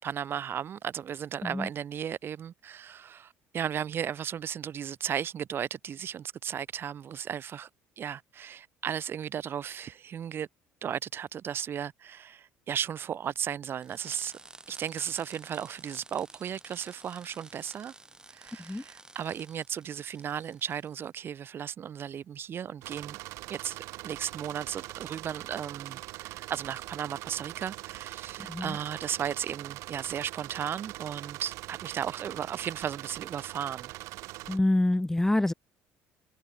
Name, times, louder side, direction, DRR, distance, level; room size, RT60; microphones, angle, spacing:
voice 1, 0.0-7.7 8.0-10.5 10.8-14.4 14.7-17.9 18.3-23.2 23.5-33.9, right 8 dB, 50° right, 4.3 m, -35 dB
sound 1, 13.8-21.0, right 2 dB, 15° right, 6.7 m, -52 dB
sound 2, 22.8-34.6, right 19 dB, 75° right, 1.1 m, -42 dB
voice 2, 34.5-35.5, left 1 dB, 10° left, 0.5 m, -26 dB
supercardioid pair, 90°, 5 cm